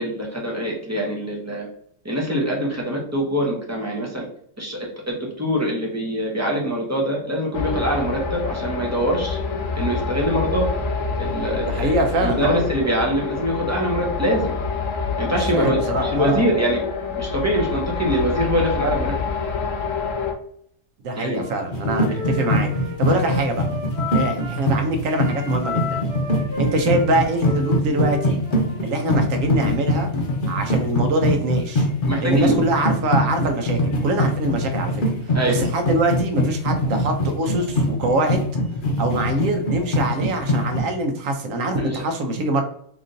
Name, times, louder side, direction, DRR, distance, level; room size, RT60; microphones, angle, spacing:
voice 1, 0.0-1.7 2.0-4.3 4.6-4.8 5.1-9.4 9.7-10.7 11.2-14.5 15.2-16.8 17.2-19.1 21.2-21.4 22.1-22.2 32.1-32.6 35.3-35.6 41.8-42.0, equal, 15° right, -2 dB, 0.6 m, -23 dB
sound 1, 7.5-20.3, left 5 dB, 80° left, 1.0 m, -27 dB
voice 2, 11.6-12.6 15.3-16.4 21.0-22.7 23.0-23.7 24.1-26.1 26.6-28.4 28.8-30.1 30.5-31.9 32.2-35.0 35.5-38.4 39.0-42.6, right 2 dB, 90° right, 5 dB, 1.1 m, -24 dB
Wind instrument woodwind instrument, 21.3-24.7 25.1-28.8, left 3 dB, 60° right, 1.1 m, -33 dB
sound 2, 21.7-40.8, left 1 dB, 50° left, 0.8 m, -22 dB
3.8 x 3.0 x 2.6 m, 0.67 s
omnidirectional pair, 1.3 m